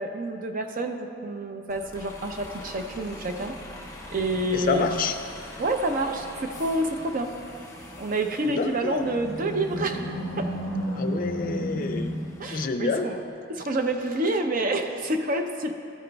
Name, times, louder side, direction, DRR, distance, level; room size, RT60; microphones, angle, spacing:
voice 1, 0.0-3.6 4.1-5.0 5.6-7.3 8.0-10.1 10.4-10.5 12.4-13.2 13.5-15.7, right 2 dB, 45° right, 5 dB, 0.6 m, -28 dB
Bus, 1.7-12.5, left 1 dB, 15° left, 0.8 m, -44 dB
voice 2, 4.5-5.1 8.4-9.0 11.0-12.2 12.5-13.1, left 4 dB, 45° left, 7 dB, 0.4 m, -28 dB
Animal, 8.6-13.0, equal, 75° right, 2.2 m, -32 dB
13.5 x 9.0 x 2.3 m, 2.5 s
head